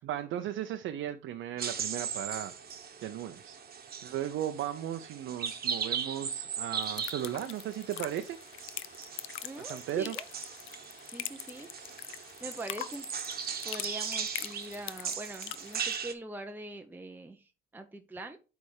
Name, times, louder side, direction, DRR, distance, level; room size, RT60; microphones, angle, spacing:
voice 1, 0.0-2.5 3.0-3.6 4.0-8.4 9.6-10.2, right 11 dB, 75° right, 7 dB, 0.6 m, -36 dB
sound 1, 1.6-16.1, right 7 dB, 50° right, 1.2 m, -38 dB
sound 2, 6.8-16.0, left 13 dB, 75° left, 0.5 m, -44 dB
voice 2, 9.4-10.3 11.0-11.7 12.4-13.1 13.6-18.4, right 2 dB, 10° right, 5 dB, 0.7 m, -43 dB
8.5 x 3.5 x 4.8 m, 0.33 s
cardioid pair, 90°, 20 cm